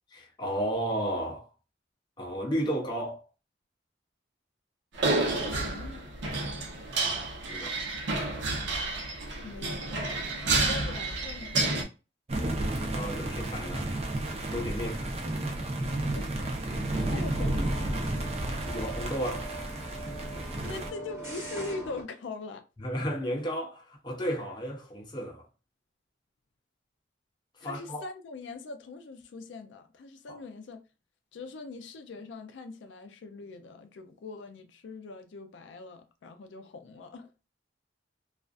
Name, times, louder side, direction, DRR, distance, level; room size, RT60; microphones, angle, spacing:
voice 1, 0.1-1.5 2.2-3.3 7.5-7.8 12.7-13.9 14.5-15.1 18.6-19.5 20.3-20.8 22.8-25.4 27.6-28.0 30.3-30.4, equal, 25° left, 0.6 m, -33 dB
sound 1, 5.0-11.8, right 3 dB, 85° right, 0.7 m, -30 dB
voice 2, 5.1-6.1 9.4-10.0 10.5-11.6 16.1-16.3 17.1-18.1 20.6-22.6 27.6-30.8 31.3-37.3, left 3 dB, 85° left, 0.4 m, -42 dB
sound 2, 12.3-20.9, right 1 dB, 35° right, 0.5 m, -32 dB
sound 3, 16.9-22.0, right 1 dB, 15° right, 0.9 m, -42 dB
2.4 x 2.4 x 2.3 m
head